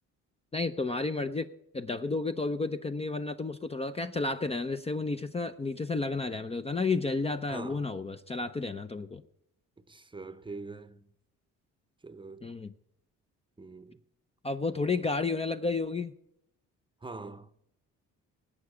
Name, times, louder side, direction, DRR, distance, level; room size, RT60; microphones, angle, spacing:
voice 1, 0.5-1.5 1.7-9.2 12.4-12.7 14.4-16.1, left 3 dB, 20° left, 0.5 m, -31 dB
voice 2, 7.5-7.9 9.8-11.1 12.0-12.5 13.6-14.0 17.0-17.5, right 3 dB, 15° right, 0.8 m, -44 dB
18.5 x 8.5 x 5.0 m
cardioid pair, 90°, 30 cm